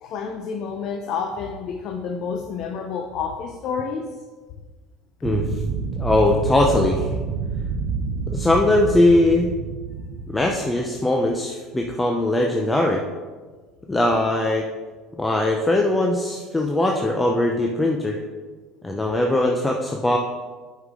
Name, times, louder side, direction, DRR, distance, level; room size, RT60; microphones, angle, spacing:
voice 1, 0.0-4.1, left 6 dB, 55° left, 4 dB, 0.6 m, -29 dB
sound 1, 5.2-11.0, right 5 dB, 80° right, 0.8 m, -28 dB
voice 2, 6.0-7.1 8.3-9.5 10.3-13.0 13.9-14.7 15.2-18.2 18.8-20.2, left 1 dB, 10° left, 1 dB, 0.7 m, -20 dB
8.0 x 5.6 x 3.7 m, 1.4 s
supercardioid pair, 105°, 0 cm